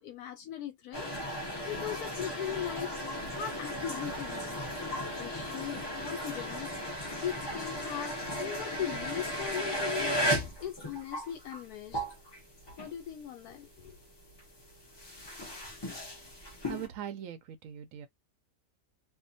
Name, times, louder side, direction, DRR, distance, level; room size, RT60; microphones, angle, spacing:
voice 1, 0.0-2.9 3.3-4.6 5.2-6.9 7.2-8.1 8.4-12.0 12.8-14.0, left 10 dB, 75° left, 1.0 m, -39 dB
sound 1, 0.9-13.2 13.5-16.9, equal, 40° left, 0.3 m, -36 dB
voice 2, 16.7-18.1, right 10 dB, 70° right, 0.8 m, -41 dB
2.6 x 2.2 x 2.6 m
omnidirectional pair, 1.7 m